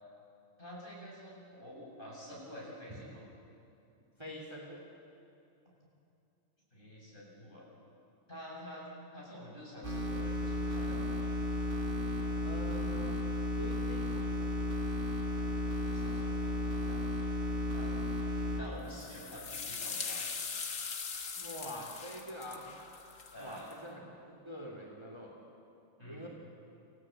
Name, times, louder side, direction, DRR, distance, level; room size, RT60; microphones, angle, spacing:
voice 1, 0.6-3.2 6.7-7.6 8.3-8.9 9.1-11.2 15.8-17.0 17.7-17.9 18.3-20.2 23.3-23.7 26.0-26.3, left 1 dB, 35° left, -4 dB, 7.3 m, -48 dB
voice 2, 4.2-4.8 12.4-13.2 13.6-14.3 17.9-18.0 21.4-22.7 23.4-25.4 26.1-26.3, equal, 20° right, -1 dB, 2.7 m, -45 dB
sound 1, 9.8-18.6, left 1 dB, 40° right, 4.0 m, -34 dB
sound 2, 18.9-23.7, left 5 dB, 85° left, 1.9 m, -41 dB
28.5 x 15.5 x 8.6 m, 2.7 s
omnidirectional pair, 1.4 m